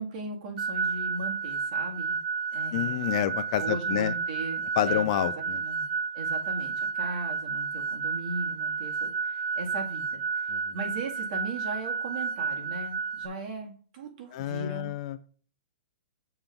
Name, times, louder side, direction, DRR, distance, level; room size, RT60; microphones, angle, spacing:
voice 1, 0.0-2.2 2.5-3.2 3.6-5.8 6.1-14.9, right 3 dB, 40° right, 1 dB, 2.2 m, -38 dB
sound 1, 0.6-13.3, right 5 dB, 85° right, 0.5 m, -31 dB
voice 2, 2.7-4.1 4.8-5.6 10.5-10.6 14.3-15.2, left 12 dB, 35° left, 13 dB, 0.4 m, -28 dB
6.7 x 3.7 x 5.8 m, 0.44 s
hypercardioid pair, 165°, 6 cm